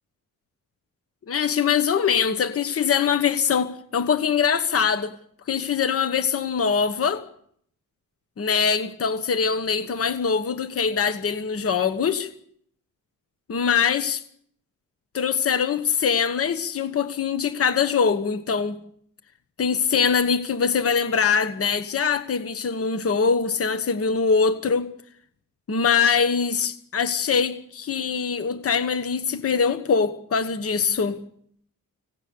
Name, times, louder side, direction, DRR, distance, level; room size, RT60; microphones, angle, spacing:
voice 1, 1.3-5.1 5.5-7.2 8.4-12.3 13.5-14.2 15.1-18.8 19.6-24.9 25.7-31.2, left 6 dB, 45° left, 1.2 m, -23 dB
25.5 x 17.5 x 6.9 m
wide cardioid pair, 155°, 33 cm